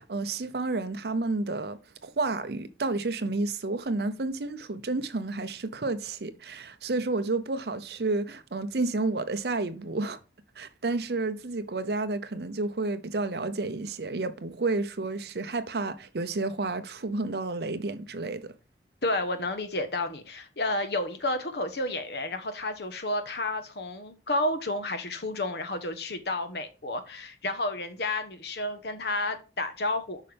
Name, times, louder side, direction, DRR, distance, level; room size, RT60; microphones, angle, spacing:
voice 1, 0.0-10.2 10.6-18.5, right 3 dB, 60° right, 0.7 m, -31 dB
voice 2, 19.0-30.2, left 2 dB, 65° left, 1.2 m, -31 dB
8.2 x 5.6 x 3.4 m
head